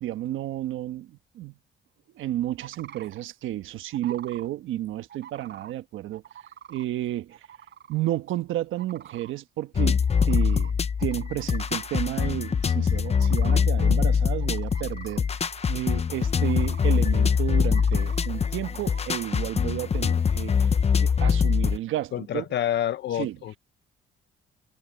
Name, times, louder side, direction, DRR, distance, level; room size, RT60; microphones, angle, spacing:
voice 1, 0.0-1.5 2.1-6.2 6.7-7.4 7.9-10.7 11.0-15.2 15.6-20.7 21.0-22.5 23.1-23.4, right 14 dB, 85° right, 1.3 m, -31 dB
sound 1, 2.6-3.2 3.9-4.5 5.1-5.7 6.1-6.8 7.3-8.0 8.8-9.3 10.1-10.7 11.0-12.2 13.0-13.6 14.4-15.7 16.5-17.0 17.6-18.3 18.6-19.4, right 9 dB, 65° right, 4.1 m, -46 dB
sound 2, 9.7-21.8, left 6 dB, 30° left, 0.7 m, -23 dB
voice 2, 22.1-23.6, left 11 dB, 60° left, 0.9 m, -28 dB
cardioid pair, 90°, 20 cm